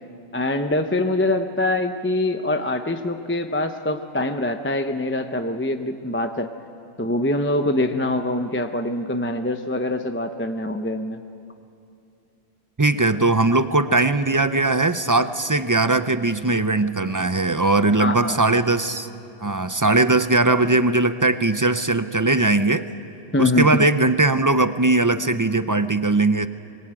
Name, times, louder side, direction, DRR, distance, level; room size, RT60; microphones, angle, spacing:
voice 1, 0.3-6.5 7.0-11.2 18.0-18.5 23.3-23.8, left 1 dB, 10° left, 6 dB, 0.7 m, -24 dB
voice 2, 12.8-19.1 19.4-22.9 23.4-26.5, right 2 dB, 25° right, 11 dB, 0.5 m, -20 dB
23.5 x 21.0 x 9.0 m, 2.6 s
omnidirectional pair, 1.2 m